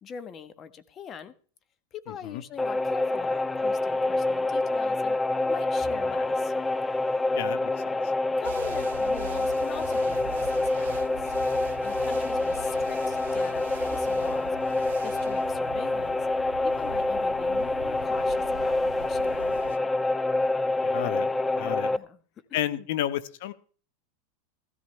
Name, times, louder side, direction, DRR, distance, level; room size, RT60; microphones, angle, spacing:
voice 1, 0.0-1.3 1.9-5.2 5.5-6.5 8.4-11.3 11.8-14.7 15.0-16.2 16.6-19.9 21.9-22.2 22.6-22.9, left 7 dB, 30° left, 12 dB, 1.2 m, -42 dB
sound 1, 2.6-22.0, left 2 dB, 10° left, 0.5 m, -27 dB
sound 2, 5.8-7.2 9.8-11.3 13.8-15.2 17.8-19.4, left 1 dB, 10° right, 3.4 m, -52 dB
voice 2, 7.3-8.0 20.8-21.3 21.6-21.9 22.5-23.5, left 12 dB, 65° left, 14 dB, 1.3 m, -31 dB
sound 3, 8.4-19.8, right 10 dB, 80° right, 0.7 m, -43 dB
15.5 x 13.5 x 3.3 m, 0.41 s
hypercardioid pair, 120°, 0 cm